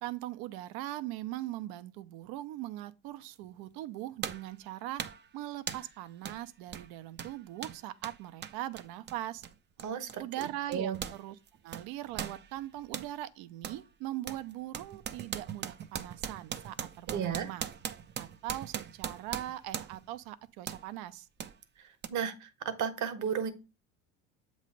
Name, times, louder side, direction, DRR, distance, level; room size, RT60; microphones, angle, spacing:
voice 1, 0.0-5.0 5.3-9.4 10.2-11.4 11.6-17.7 18.2-21.3, right 14 dB, 65° right, 0.7 m, -40 dB
sound 1, 3.4-3.5 4.2-4.5 5.0-5.3 5.7-5.9 6.2-6.4 6.7-11.2 11.5-13.1 13.6-13.8 14.3-20.1 20.7-20.9 21.4-21.5 22.0-22.1, right 8 dB, 25° right, 0.5 m, -40 dB
voice 2, 9.8-10.2 10.7-11.0 17.1-17.5 22.1-22.5 22.8-23.5, right 7 dB, 45° right, 1.1 m, -33 dB
7.4 x 3.2 x 5.3 m
supercardioid pair, 90°, 40 cm